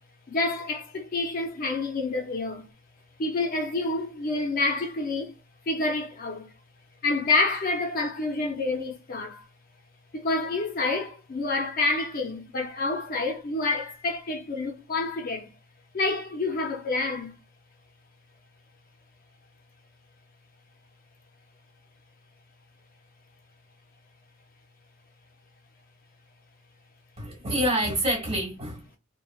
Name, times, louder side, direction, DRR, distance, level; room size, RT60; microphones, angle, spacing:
voice 1, 0.3-2.6 3.2-5.3 5.7-6.5 7.0-9.5 10.1-15.5 15.9-17.3, left 3 dB, 45° left, 0.5 m, -28 dB
voice 2, 27.2-29.0, equal, 30° right, 1.5 m, -27 dB
3.2 x 2.1 x 2.3 m
head